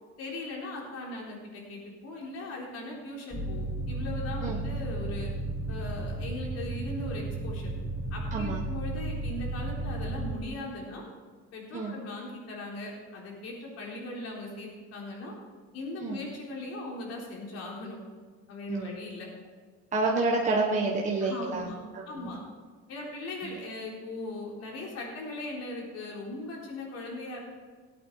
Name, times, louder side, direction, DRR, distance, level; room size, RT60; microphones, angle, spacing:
voice 1, 0.2-5.3 5.7-7.7 8.1-11.0 11.5-15.3 15.7-18.0 18.5-19.3 21.2-21.8 22.1-22.4 22.9-27.4, left 2 dB, 55° left, -2 dB, 3.9 m, -39 dB
sound 1, 3.3-10.3, right 2 dB, 5° left, 2.0 m, -34 dB
voice 2, 8.3-8.6 11.7-11.9 16.0-16.2 18.7-18.9 19.9-22.3 23.4-23.5, right 3 dB, 25° right, -2 dB, 1.3 m, -29 dB
18.5 x 8.7 x 4.7 m, 1.5 s
cardioid pair, 155°, 29 cm